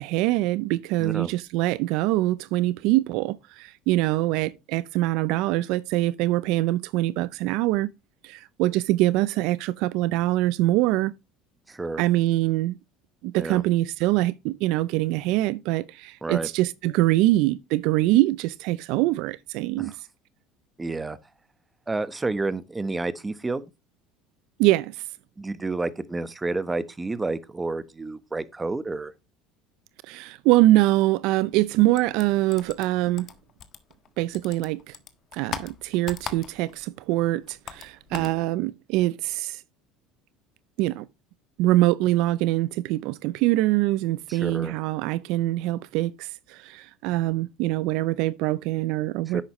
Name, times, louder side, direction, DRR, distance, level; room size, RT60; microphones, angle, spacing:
voice 1, 0.0-7.9 8.2-11.1 12.0-12.8 13.2-19.9 24.6-25.0 30.1-33.3 34.2-35.0 35.3-39.6 40.8-41.1 41.6-49.4, right 17 dB, 70° right, 0.5 m, -24 dB
voice 2, 1.0-1.3 11.7-12.0 13.3-13.6 16.2-16.5 19.8-19.9 20.8-21.2 21.9-23.6 25.4-29.1 38.1-38.3 44.3-44.7 49.3-49.4, right 3 dB, 15° right, 1.1 m, -30 dB
sound 1, 31.9-34.1 34.3-36.8 37.1-38.4, left 8 dB, 45° left, 1.5 m, -39 dB
10.5 x 8.2 x 3.1 m
supercardioid pair, 85°, 0 cm